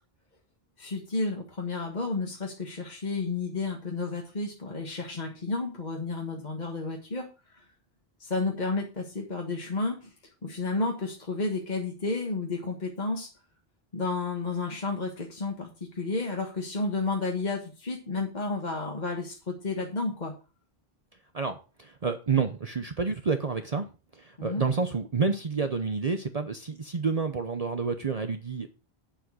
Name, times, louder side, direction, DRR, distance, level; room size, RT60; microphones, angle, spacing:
voice 1, 0.8-7.3 7.5-7.7 8.2-10.1 10.4-13.3 13.9-20.3 24.4-24.6, left 3 dB, 45° left, 0 dB, 1.8 m, -31 dB
voice 2, 21.3-23.9 24.1-28.7, right 5 dB, 40° right, 7 dB, 0.8 m, -29 dB
9.0 x 7.6 x 4.8 m, 0.33 s
omnidirectional pair, 1.1 m